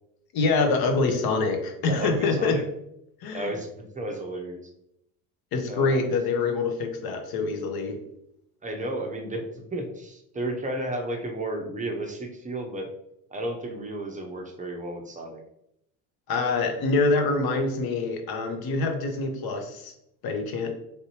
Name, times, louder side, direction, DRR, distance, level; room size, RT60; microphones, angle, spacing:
voice 1, 0.3-2.6 3.2-3.5 5.5-8.0 16.3-19.9 20.2-20.7, left 3 dB, 50° left, 4 dB, 0.8 m, -25 dB
voice 2, 1.9-2.6 3.3-4.7 5.7-6.1 8.6-12.9 13.3-15.4, right 1 dB, 15° right, 2 dB, 0.6 m, -33 dB
3.4 x 2.6 x 2.9 m, 0.79 s
supercardioid pair, 75°, 49 cm